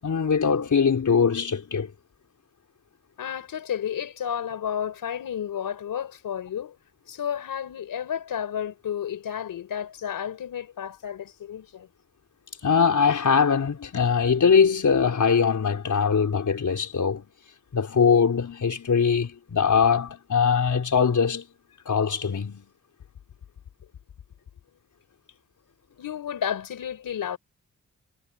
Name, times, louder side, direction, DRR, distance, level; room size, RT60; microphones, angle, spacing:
voice 1, 0.0-1.9 12.6-17.3 17.7-21.5 21.9-22.7, left 6 dB, 65° left, 4.2 m, -22 dB
voice 2, 3.2-6.7 7.1-11.9 26.0-27.4, left 9 dB, 90° left, 4.5 m, -32 dB
cardioid pair, 50°, 33 cm